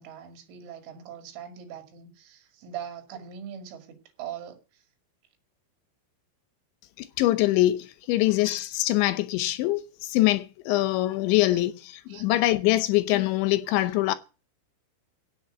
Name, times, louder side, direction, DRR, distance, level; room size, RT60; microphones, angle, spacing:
voice 1, 0.0-4.8 11.5-11.6 12.1-12.3, right 9 dB, 80° right, 4.8 m, -41 dB
voice 2, 7.0-14.1, left 16 dB, 80° left, 3.0 m, -24 dB
16.0 x 7.2 x 7.9 m
omnidirectional pair, 5.5 m